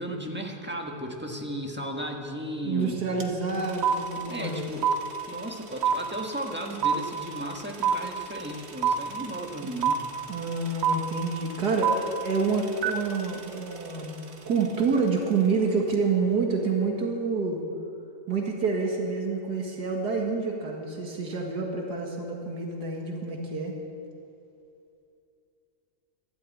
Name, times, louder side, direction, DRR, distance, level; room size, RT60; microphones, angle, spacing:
voice 1, 0.0-2.9 4.2-4.9 5.3-10.0, equal, 5° right, 1 dB, 1.4 m, -35 dB
voice 2, 2.6-4.7 10.3-14.1 14.5-17.6 18.3-23.7, right 4 dB, 90° right, 1 dB, 2.3 m, -28 dB
sound 1, 3.2-3.3 3.5-14.7, right 7 dB, 45° right, 1.3 m, -28 dB
12.5 x 12.5 x 8.5 m, 2.6 s
omnidirectional pair, 1.7 m